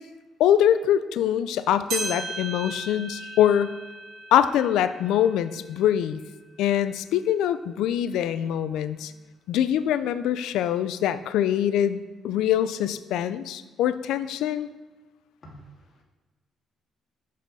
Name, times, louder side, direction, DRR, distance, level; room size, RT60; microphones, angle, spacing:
voice 1, 0.4-3.8 4.3-6.2 6.6-9.1 9.5-12.0 12.2-14.7, left 10 dB, 90° left, 13 dB, 0.4 m, -23 dB
sound 1, 1.9-6.5 7.0-7.1 7.9-8.0 9.0-9.1, right 3 dB, 80° right, 1.9 m, -37 dB
voice 2, 15.4-16.0, right 1 dB, 35° left, -3 dB, 2.6 m, -48 dB
6.5 x 6.3 x 5.4 m, 1.2 s
cardioid pair, 90°, 0 cm